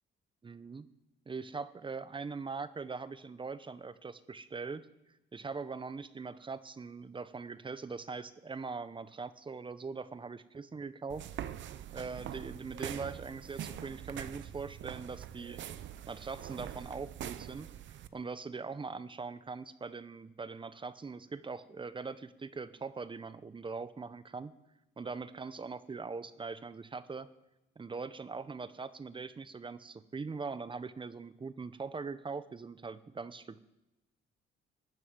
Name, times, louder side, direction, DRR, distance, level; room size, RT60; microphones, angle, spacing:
voice 1, 0.4-0.9 1.3-4.9 5.3-11.3 11.9-15.6 16.1-17.7 18.1-24.5 25.0-27.3 27.8-33.6, right 4 dB, 25° right, 15 dB, 0.6 m, -41 dB
sound 1, 11.1-18.1, right 10 dB, 70° right, 0.7 m, -44 dB
12.5 x 6.0 x 9.4 m, 0.95 s
cardioid pair, 90°, 20 cm